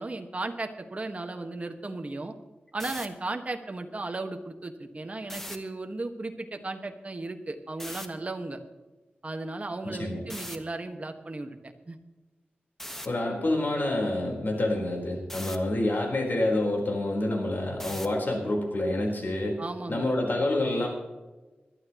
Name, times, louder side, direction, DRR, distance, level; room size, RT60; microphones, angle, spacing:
voice 1, 0.0-2.3 2.7-8.6 9.2-12.0 19.6-20.1, right 2 dB, 40° right, 5 dB, 1.6 m, -35 dB
sound 1, 2.7-3.1 5.2-5.6 7.8-8.1 10.3-10.6 12.8-13.1 15.3-15.6 17.8-18.2, equal, 10° left, 1.3 m, -39 dB
voice 2, 9.8-10.2 13.0-19.6 19.9-20.9, left 1 dB, 60° left, 0 dB, 4.2 m, -27 dB
21.0 x 12.5 x 3.1 m, 1.2 s
wide cardioid pair, 85°, 4 cm